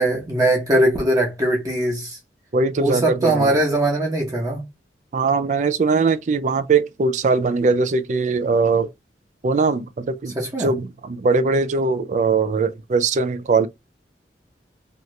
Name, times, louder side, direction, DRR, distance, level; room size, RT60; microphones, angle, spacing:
voice 1, 0.0-2.2 2.8-4.6 10.3-10.7, right 1 dB, 20° right, 0.9 m, -20 dB
voice 2, 2.5-3.5 5.1-8.9 9.4-13.7, right 4 dB, 45° right, 0.3 m, -20 dB
2.8 x 2.5 x 3.1 m
head